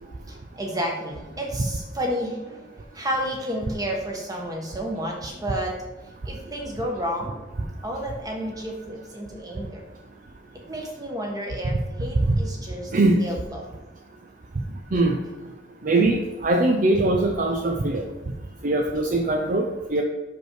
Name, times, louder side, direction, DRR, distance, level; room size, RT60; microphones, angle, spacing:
voice 1, 0.0-5.8 6.2-7.4 7.8-9.8 10.7-13.7, equal, 20° right, -1 dB, 1.4 m, -31 dB
voice 2, 15.8-18.0 18.6-20.0, right 2 dB, 45° right, 3 dB, 0.5 m, -21 dB
6.3 x 5.4 x 4.6 m, 1.1 s
head